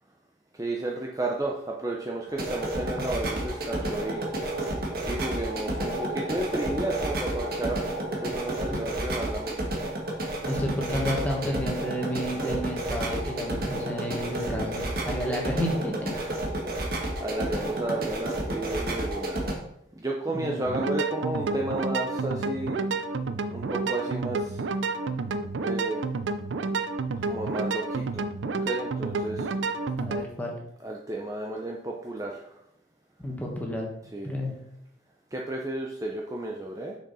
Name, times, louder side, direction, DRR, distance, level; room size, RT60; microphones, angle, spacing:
voice 1, 0.5-4.3 5.0-7.8 8.2-9.6 16.1-16.3 17.2-19.4 20.0-22.9 23.5-24.6 25.6-26.0 27.2-29.5 30.8-32.4 34.1-34.3 35.3-37.0, right 2 dB, 20° right, -1 dB, 0.6 m, -32 dB
sound 1, 2.3-19.5, right 1 dB, 50° right, 1.4 m, -31 dB
voice 2, 10.5-16.1 20.3-20.7 30.0-30.6 33.2-33.9 34.2-34.5, equal, 10° left, -1 dB, 1.5 m, -31 dB
sound 2, 20.7-30.3, right 3 dB, 80° right, 0.5 m, -30 dB
6.4 x 6.2 x 4.1 m, 0.75 s
head